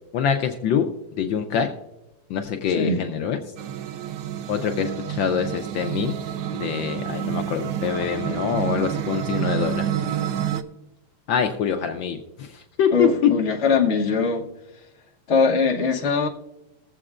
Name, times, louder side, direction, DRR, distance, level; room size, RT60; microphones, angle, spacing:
voice 1, 0.1-1.7 2.3-3.4 4.5-6.2 6.5-9.9 11.3-13.3, left 7 dB, 70° left, 6 dB, 1.3 m, -24 dB
sound 1, 3.6-10.6, right 10 dB, 70° right, 1.2 m, -28 dB
voice 2, 12.9-14.4 15.3-16.3, left 4 dB, 40° left, -1 dB, 1.2 m, -21 dB
21.5 x 7.6 x 2.4 m, 0.95 s
omnidirectional pair, 2.3 m